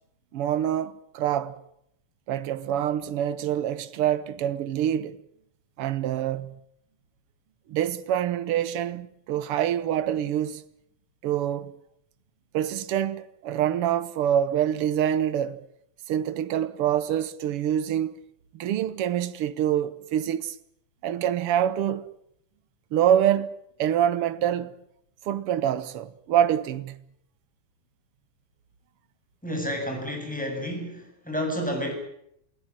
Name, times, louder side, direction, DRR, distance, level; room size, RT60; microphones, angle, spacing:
voice 1, 0.3-1.6 2.3-5.2 5.8-6.6 7.7-10.6 11.2-11.8 12.5-15.6 16.1-18.1 18.5-20.6 21.0-22.1 22.9-23.5 23.8-24.7 25.3-27.0, right 10 dB, 60° right, 1.8 m, -26 dB
voice 2, 29.4-31.9, equal, ahead, 7.8 m, -30 dB
28.5 x 17.0 x 8.9 m
omnidirectional pair, 3.4 m